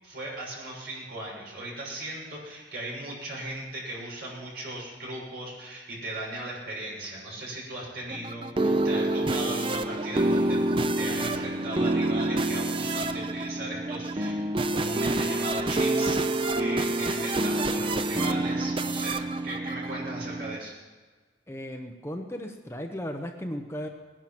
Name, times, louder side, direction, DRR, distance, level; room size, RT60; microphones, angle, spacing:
voice 1, 0.0-10.6 11.0-14.4 14.7-19.2 19.4-20.7, right 1 dB, 55° right, -4 dB, 6.7 m, -37 dB
sound 1, 8.1-20.6, right 2 dB, 30° right, 0.6 m, -27 dB
voice 2, 21.5-23.9, equal, 15° left, 4 dB, 0.9 m, -36 dB
19.5 x 11.0 x 6.0 m, 1.4 s
head